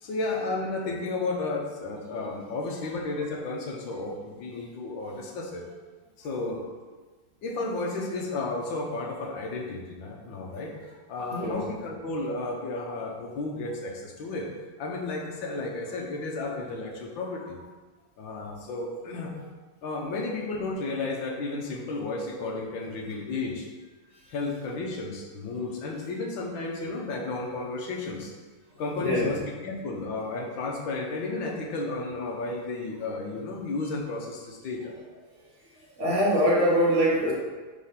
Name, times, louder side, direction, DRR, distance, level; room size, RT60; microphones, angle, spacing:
voice 1, 0.0-5.6 6.2-6.6 6.9-7.0 7.4-10.7 11.1-14.5 14.8-17.6 18.2-19.3 19.8-23.7 24.3-28.3 28.8-29.4 29.6-34.9, left 3 dB, 70° left, 0 dB, 1.7 m, -33 dB
voice 2, 11.3-11.7 24.2-24.3 28.7-29.4 36.0-37.3, equal, 35° right, -6 dB, 1.8 m, -24 dB
5.0 x 4.7 x 5.7 m, 1.3 s
omnidirectional pair, 2.3 m